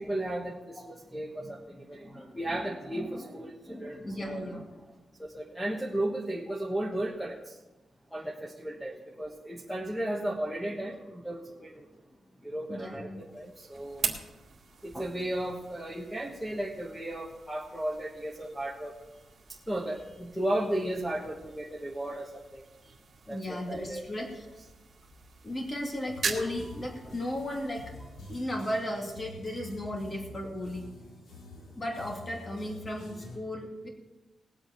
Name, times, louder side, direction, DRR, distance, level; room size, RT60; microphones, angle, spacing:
voice 1, 0.0-4.9 5.2-7.6 8.1-11.9 12.4-14.0 14.8-18.9 19.5-22.9 23.3-24.0, right 1 dB, ahead, -1 dB, 1.3 m, -35 dB
voice 2, 4.0-4.7 12.7-13.2 23.3-24.5 25.4-27.8 28.3-30.9 31.7-33.9, left 1 dB, 25° left, 0 dB, 2.4 m, -35 dB
sound 1, 13.2-30.1, right 5 dB, 45° right, 2.0 m, -43 dB
sound 2, 26.1-33.4, left 1 dB, 80° left, 3.6 m, -48 dB
20.5 x 8.0 x 4.5 m, 1.1 s
wide cardioid pair, 140°, 0 cm